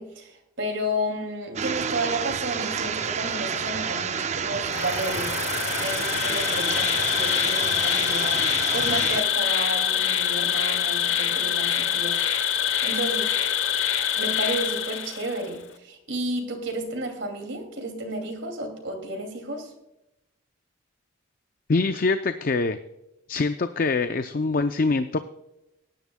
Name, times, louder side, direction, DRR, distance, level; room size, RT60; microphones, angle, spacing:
voice 1, 0.0-5.4 5.8-12.2 12.8-13.3 14.2-19.7, right 1 dB, 65° right, 3 dB, 2.4 m, -32 dB
sound 1, 1.6-9.2, right 6 dB, 35° right, 0.5 m, -30 dB
Insect, 4.7-15.5, left 9 dB, 80° left, 0.9 m, -25 dB
voice 2, 21.7-22.8 23.3-25.2, left 3 dB, 45° left, 9 dB, 0.4 m, -24 dB
18.5 x 10.5 x 2.2 m, 0.91 s
head